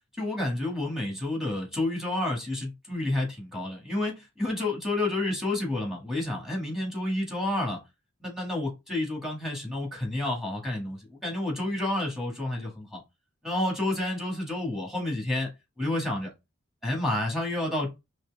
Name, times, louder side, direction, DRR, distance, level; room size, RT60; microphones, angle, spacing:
voice 1, 0.2-7.8 8.2-13.0 13.4-15.5 15.8-16.3 16.8-17.9, left 1 dB, ahead, 1.8 m, -30 dB
4.4 x 3.4 x 3.5 m
head